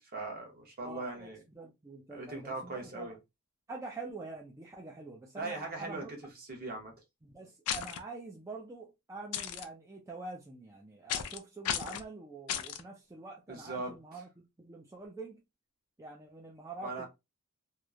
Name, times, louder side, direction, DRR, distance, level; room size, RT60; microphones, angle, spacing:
voice 1, 0.1-1.4 2.1-3.2 5.4-6.2 6.5-6.9 13.5-14.0 16.8-17.1, right 3 dB, 40° right, 0.9 m, -39 dB
voice 2, 0.8-3.2 3.7-6.1 7.2-15.4 16.0-17.1, right 3 dB, 15° right, 0.4 m, -46 dB
sound 1, 7.7-8.0 9.3-9.6 11.1-11.4 11.6-12.0 12.5-12.8, left 9 dB, 80° left, 0.4 m, -34 dB
2.9 x 2.0 x 2.3 m
head